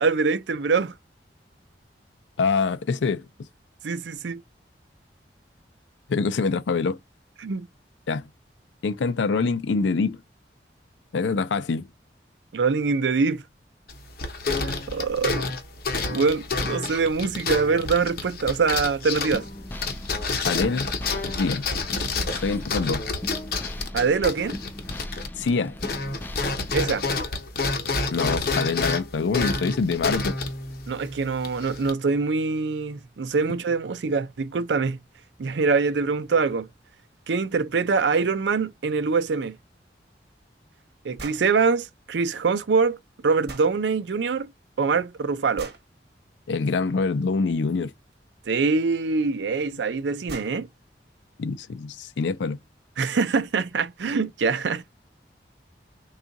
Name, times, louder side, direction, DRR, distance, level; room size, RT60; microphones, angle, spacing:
voice 1, 0.0-0.9 3.8-4.4 7.4-7.7 12.5-13.4 14.6-15.4 16.1-19.5 23.9-24.6 26.7-27.1 30.9-35.0 35.4-36.7 37.3-39.6 41.0-43.0 43.2-44.5 44.8-45.7 48.5-50.7 53.0-54.8, right 4 dB, 80° right, 0.5 m, -24 dB
voice 2, 2.4-3.2 6.1-7.0 8.1-8.3 8.8-10.2 11.1-11.9 20.4-20.9 21.3-21.6 22.4-23.0 25.4-25.8 28.1-30.4 46.5-47.9 51.4-52.6, left 4 dB, 90° left, 0.4 m, -25 dB
sound 1, 13.9-25.5 25.8-31.9, left 3 dB, 55° left, 0.8 m, -29 dB
sound 2, 19.3-27.1, left 1 dB, 10° left, 0.3 m, -38 dB
sound 3, 41.2-41.5 43.5-43.7 45.6-45.9 48.1-48.2 49.5-49.6 50.0-50.1 50.3-50.6, right 3 dB, 65° right, 1.1 m, -39 dB
3.6 x 2.4 x 3.9 m
head